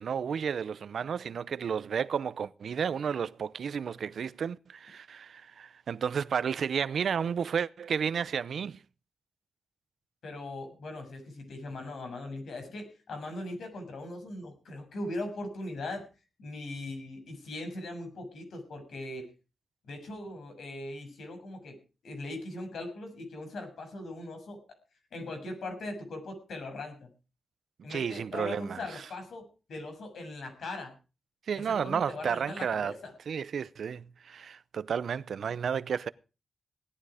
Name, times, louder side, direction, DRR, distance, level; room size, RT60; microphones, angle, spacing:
voice 1, 0.0-8.8 27.9-29.0 31.5-32.9 33.3-36.1, right 7 dB, 65° right, 0.6 m, -32 dB
voice 2, 10.2-16.0 16.4-19.2 19.9-21.7 22.0-24.6 25.1-27.1 27.8-29.4 29.7-30.9 31.5-33.1, left 2 dB, 70° left, 6.7 m, -40 dB
17.5 x 12.5 x 5.0 m
wide cardioid pair, 165°, 0 cm